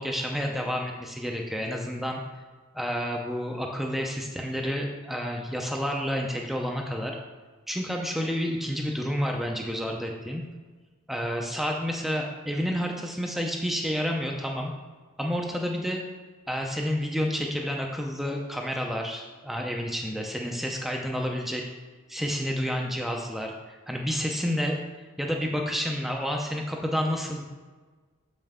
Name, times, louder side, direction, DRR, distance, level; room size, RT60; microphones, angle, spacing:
voice 1, 0.0-2.2 2.7-7.2 7.7-10.4 11.1-14.7 15.2-16.0 16.5-21.6 22.1-24.8 25.2-27.4, equal, ahead, 0 dB, 0.5 m, -30 dB
6.6 x 5.4 x 3.6 m, 1.4 s
head